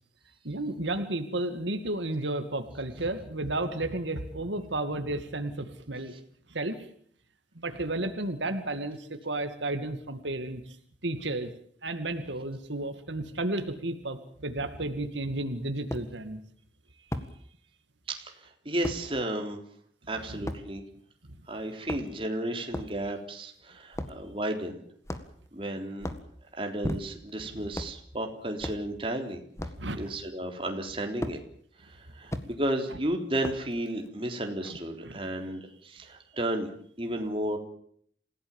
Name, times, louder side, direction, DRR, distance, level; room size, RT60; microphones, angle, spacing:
voice 1, 0.4-6.1 6.5-6.8 7.6-10.6 11.0-11.5 11.8-16.4 20.3-20.4 29.8-30.0 34.6-34.8 35.0-35.2, right 2 dB, 90° right, 8 dB, 2.4 m, -32 dB
sound 1, 14.9-15.0 15.9-16.1 17.1-17.3 18.8-19.0 20.5-20.6 21.7-22.3 22.7-23.0 23.9-24.2 25.1-25.5 26.0-26.3 26.8-27.3 27.7-28.0 28.6-28.9 29.6-29.8 31.2-31.4 32.3-32.5 33.4-33.7, left 1 dB, 15° left, 1.7 m, -35 dB
voice 2, 18.1-19.6 20.1-20.8 21.5-24.8 25.5-26.1 26.6-29.4 29.9-31.4 31.8-36.7 37.0-37.6, right 1 dB, 30° right, 3 dB, 3.6 m, -33 dB
28.0 x 16.5 x 7.4 m, 0.63 s
head